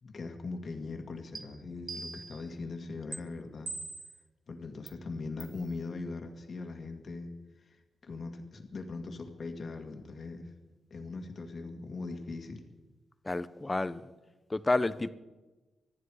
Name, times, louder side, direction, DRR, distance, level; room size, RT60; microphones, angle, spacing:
voice 1, 0.0-3.7 4.5-7.3 7.6-10.5 10.9-12.6, left 3 dB, 50° left, 2.0 m, -40 dB
sound 1, 1.4-1.5 1.9-2.5 3.1-3.2 3.7-4.2 4.9-5.0 5.4-5.6, right 4 dB, 45° right, 1.6 m, -41 dB
voice 2, 13.2-14.0 14.5-15.1, left 2 dB, 20° left, 0.8 m, -30 dB
25.5 x 10.5 x 4.9 m
cardioid pair, 95°, 0 cm